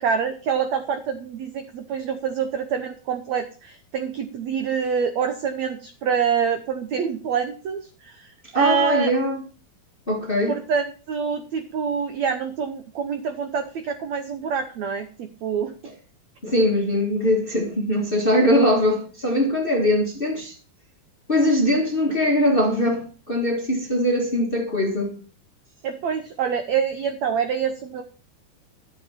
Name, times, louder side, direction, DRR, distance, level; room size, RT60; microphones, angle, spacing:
voice 1, 0.0-9.1 10.5-15.7 25.8-28.0, right 6 dB, 80° right, 1.6 m, -26 dB
voice 2, 8.5-9.4 10.1-10.6 16.4-20.5 21.3-25.2, left 1 dB, 45° left, 0.6 m, -21 dB
12.5 x 7.2 x 5.7 m
omnidirectional pair, 4.4 m